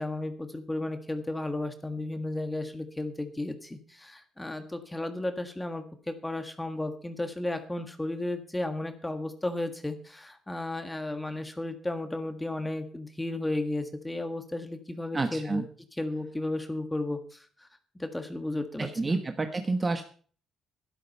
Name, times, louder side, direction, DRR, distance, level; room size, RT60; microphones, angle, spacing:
voice 1, 0.0-15.6 16.0-17.7 18.0-19.2, left 2 dB, 10° left, 7 dB, 1.7 m, -34 dB
voice 2, 15.1-15.6 18.8-20.0, right 3 dB, 25° right, 7 dB, 1.3 m, -29 dB
12.0 x 11.5 x 5.4 m, 0.44 s
cardioid pair, 100°, 0 cm